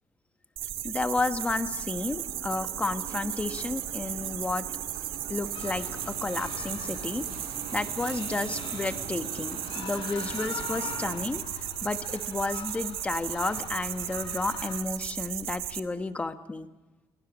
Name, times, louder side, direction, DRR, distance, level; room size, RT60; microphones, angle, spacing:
sound 1, 0.6-15.8, right 12 dB, 90° right, 1.8 m, -36 dB
voice 1, 0.8-4.6 5.3-7.2 7.7-11.4 11.8-16.7, left 3 dB, 15° left, 8 dB, 1.2 m, -32 dB
sound 2, 1.2-11.4, right 6 dB, 55° right, 4.1 m, -45 dB
sound 3, 5.5-14.8, left 7 dB, 70° left, 4.2 m, -43 dB
29.5 x 23.0 x 6.2 m, 1.1 s
cardioid pair, 165°, 9 cm